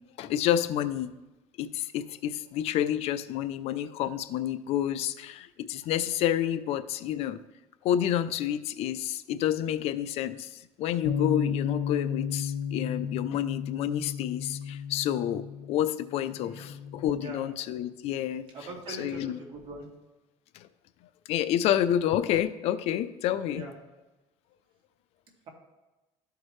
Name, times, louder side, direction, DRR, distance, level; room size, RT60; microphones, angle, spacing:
voice 1, 0.2-1.2 1.6-7.4 7.8-18.4 18.9-19.4 20.5-20.7 21.3-23.7, left 11 dB, 60° left, 13 dB, 0.4 m, -29 dB
Bass guitar, 11.0-17.3, left 7 dB, 85° left, 1.0 m, -34 dB
voice 2, 16.3-16.8 17.2-17.4 18.5-19.9 23.5-23.7, right 3 dB, 45° right, -2 dB, 2.1 m, -42 dB
13.0 x 4.6 x 3.2 m, 1.1 s
cardioid pair, 130°, 12 cm